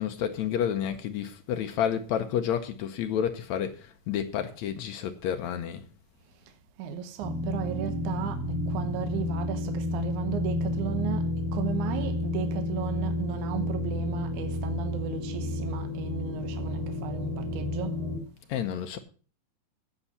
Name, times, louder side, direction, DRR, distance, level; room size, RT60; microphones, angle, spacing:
voice 1, 0.0-5.8 18.5-19.0, left 9 dB, 75° left, 1.7 m, -30 dB
voice 2, 6.8-18.0, right 8 dB, 70° right, 2.3 m, -35 dB
sound 1, 7.2-18.2, left 1 dB, 85° right, 4.1 m, -31 dB
9.9 x 8.1 x 5.5 m
omnidirectional pair, 4.0 m